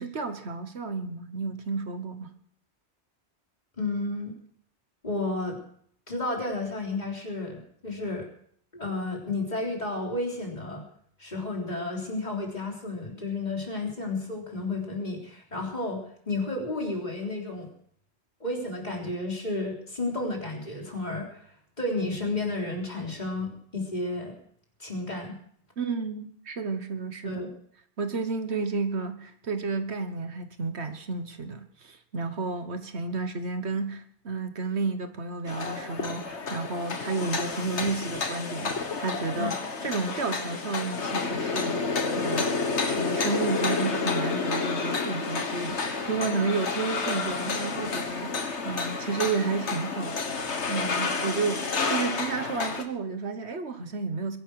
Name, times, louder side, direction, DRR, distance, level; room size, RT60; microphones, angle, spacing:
voice 1, 0.0-2.3 25.8-27.3 28.0-39.5 39.8-41.8 42.1-50.2 50.7-54.4, right 4 dB, 75° right, 8 dB, 1.6 m, -31 dB
voice 2, 3.8-4.3 5.0-5.6 6.1-8.3 8.7-10.8 11.2-17.7 18.4-21.3 21.8-24.4 24.8-25.4 27.3-27.5 39.4-39.5, left 2 dB, 40° left, -1 dB, 3.8 m, -32 dB
sound 1, 35.5-52.8, left 4 dB, 90° left, 1.8 m, -30 dB
22.0 x 11.0 x 4.8 m, 0.63 s
omnidirectional pair, 1.1 m